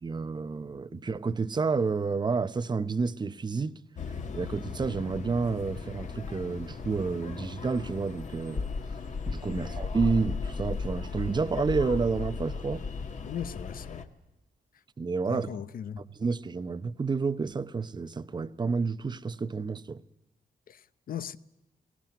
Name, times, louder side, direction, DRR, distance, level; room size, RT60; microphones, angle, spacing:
voice 1, 0.0-3.8 4.3-8.7 9.3-12.8 15.0-15.6 16.0-20.0, right 4 dB, 30° right, 0.8 m, -30 dB
sound 1, 4.0-14.0, left 4 dB, 50° left, 1.7 m, -36 dB
voice 2, 13.2-14.1 15.2-16.0 20.7-21.4, left 9 dB, 70° left, 0.9 m, -38 dB
20.0 x 18.0 x 9.2 m
wide cardioid pair, 135°, 15 cm